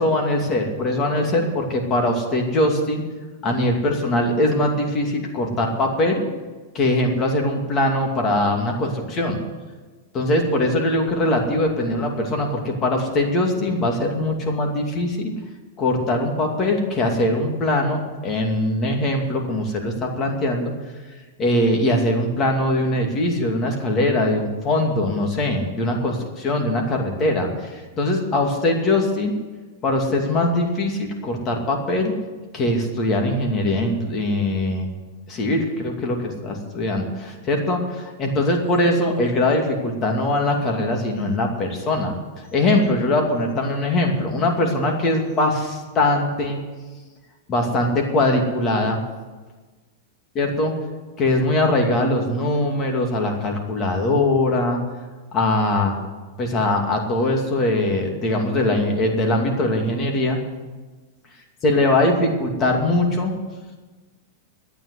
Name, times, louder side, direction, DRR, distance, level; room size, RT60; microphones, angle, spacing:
voice 1, 0.0-3.0 3.4-6.2 6.7-9.4 10.1-15.3 15.8-20.7 21.4-29.3 29.8-32.1 32.5-34.9 35.3-42.1 42.5-46.6 47.5-49.0 50.4-50.7 51.2-54.8 55.3-55.9 56.4-60.4 61.6-63.3, left 1 dB, 25° left, 2 dB, 2.5 m, -21 dB
12.5 x 9.3 x 9.6 m, 1.3 s
supercardioid pair, 145°, 0 cm